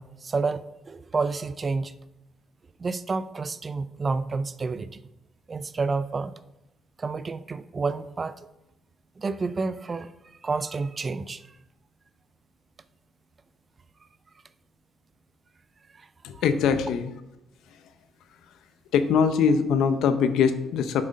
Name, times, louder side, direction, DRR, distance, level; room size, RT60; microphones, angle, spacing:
voice 1, 0.0-1.9 2.8-4.9 5.5-6.4 7.0-8.5 9.2-11.4 15.9-16.1 16.3-16.4, right 4 dB, 35° right, 14 dB, 0.5 m, -30 dB
voice 2, 16.2-17.1 18.9-21.1, left 6 dB, 85° left, 11 dB, 0.7 m, -22 dB
7.4 x 6.3 x 5.2 m, 0.94 s
cardioid pair, 90°, 0 cm